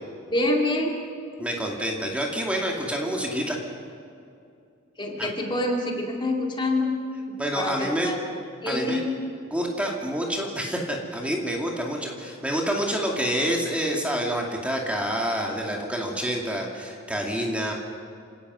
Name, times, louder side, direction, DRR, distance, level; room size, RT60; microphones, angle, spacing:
voice 1, 0.3-0.9 5.0-6.9 7.3-8.2 8.6-9.1, left 1 dB, 25° left, 1 dB, 2.4 m, -26 dB
voice 2, 1.4-3.6 5.2-5.3 7.4-8.1 8.7-9.0 9.5-17.7, equal, 5° right, 0 dB, 2.3 m, -27 dB
27.5 x 17.5 x 6.2 m, 2.5 s
head